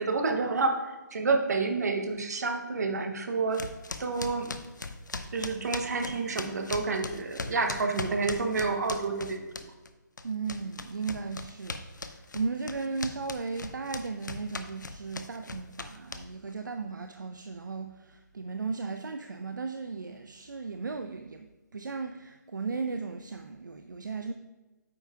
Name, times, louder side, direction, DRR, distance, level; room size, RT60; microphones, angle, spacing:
voice 1, 0.0-3.6 4.0-4.5 5.3-9.5, right 4 dB, 60° right, 5 dB, 1.0 m, -29 dB
sound 1, 3.5-9.9 10.2-16.5, left 3 dB, 75° left, 0.5 m, -39 dB
voice 2, 10.2-24.3, right 4 dB, 75° right, 6 dB, 0.4 m, -36 dB
9.0 x 5.4 x 2.4 m, 1.2 s
figure-of-eight pair, 140°, 10 cm